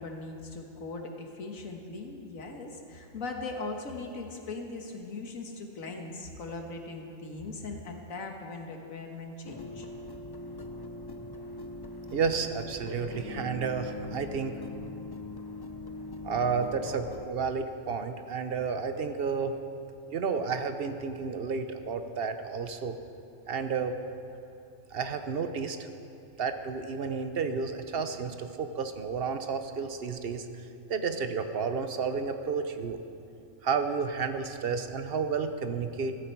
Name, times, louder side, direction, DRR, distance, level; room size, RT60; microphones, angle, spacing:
voice 1, 0.0-9.9, left 3 dB, 90° left, 3 dB, 1.8 m, -39 dB
sound 1, 9.4-17.3, left 2 dB, 35° left, 0.3 m, -41 dB
voice 2, 12.1-14.6 16.2-19.5 20.1-23.0 23.5-23.9 24.9-25.8 26.4-33.0 33.6-36.1, right 5 dB, 50° right, 8 dB, 0.9 m, -31 dB
16.0 x 14.5 x 4.6 m, 2.6 s
omnidirectional pair, 1.4 m